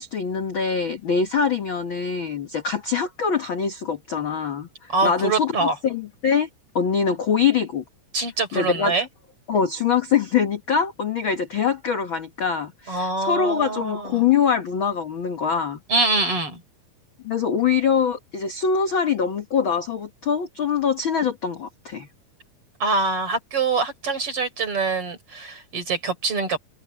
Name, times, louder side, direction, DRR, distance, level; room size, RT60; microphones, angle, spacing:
voice 1, 0.0-6.5 6.7-7.8 8.5-8.9 9.5-15.8 17.2-22.1, left 6 dB, 50° left, 1.6 m, -23 dB
voice 2, 4.9-5.8 8.1-9.1 12.9-14.2 15.9-16.6 22.8-26.6, right 3 dB, 40° right, 5.3 m, -24 dB
omnidirectional pair, 4.1 m